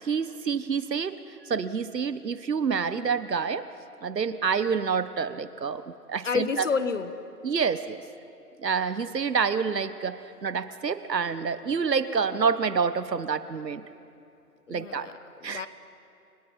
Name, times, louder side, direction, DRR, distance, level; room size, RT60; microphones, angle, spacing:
voice 1, 0.0-1.2 1.4-3.6 4.0-6.6 7.4-8.0 8.6-13.8 14.7-15.1 15.4-15.7, right 6 dB, 90° right, 13 dB, 1.3 m, -28 dB
voice 2, 6.2-7.1 14.7-15.7, left 5 dB, 50° left, 12 dB, 1.3 m, -29 dB
29.5 x 18.0 x 5.5 m, 2.6 s
hypercardioid pair, 165°, 48 cm